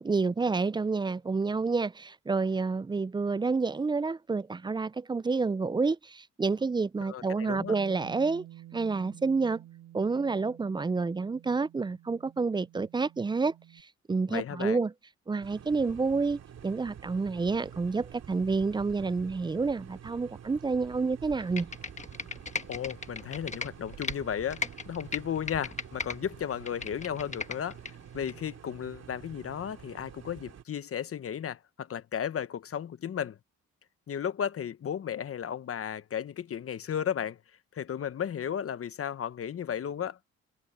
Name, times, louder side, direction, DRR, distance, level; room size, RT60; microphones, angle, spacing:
voice 1, 0.0-8.5 8.7-9.6 9.9-13.5 14.1-14.9 15.3-21.7, right 4 dB, 15° right, 0.4 m, -29 dB
voice 2, 7.0-7.7 14.3-14.8 22.7-27.8 28.1-33.4 34.1-37.4 37.7-40.2, left 8 dB, 50° left, 1.1 m, -34 dB
Bass guitar, 7.6-13.8, right 13 dB, 85° right, 6.6 m, -51 dB
sound 1, 15.4-30.6, right 9 dB, 60° right, 2.5 m, -48 dB
Computer keyboard, 21.4-24.2 24.5-26.2 26.5-27.9 28.3-28.4, left 4 dB, 25° left, 1.3 m, -36 dB
cardioid pair, 90°, 30 cm